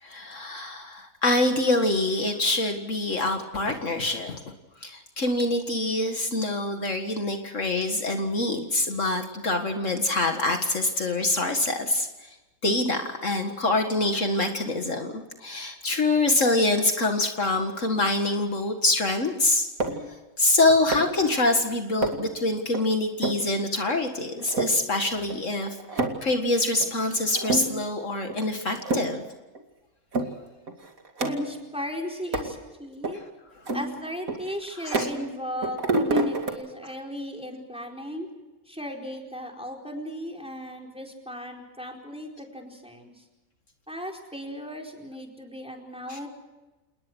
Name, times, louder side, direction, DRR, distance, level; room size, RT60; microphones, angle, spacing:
voice 1, 0.0-4.4 4.8-12.4 12.6-19.7 20.4-29.2 33.7-33.8 34.8-35.1 46.1-46.2, left 2 dB, 60° left, 5 dB, 2.2 m, -25 dB
sound 1, 19.8-20.1 20.9-21.3 22.0-22.3 22.7-22.8 23.2-23.5 23.9-24.0 24.4-24.7 25.3-25.4 25.6-26.3 26.8-26.9 27.3-27.9 28.3-28.4 28.8-29.2 29.5-29.6 30.1-30.3 30.7-31.7 32.3-32.6 33.0-33.1 33.7-35.4 35.6-36.5, right 2 dB, 75° right, 2.9 m, -28 dB
voice 2, 31.2-33.2 33.7-38.3 38.7-43.2 43.9-46.3, equal, 5° right, 2 dB, 4.5 m, -36 dB
28.5 x 20.0 x 6.3 m, 1.1 s
omnidirectional pair, 1.5 m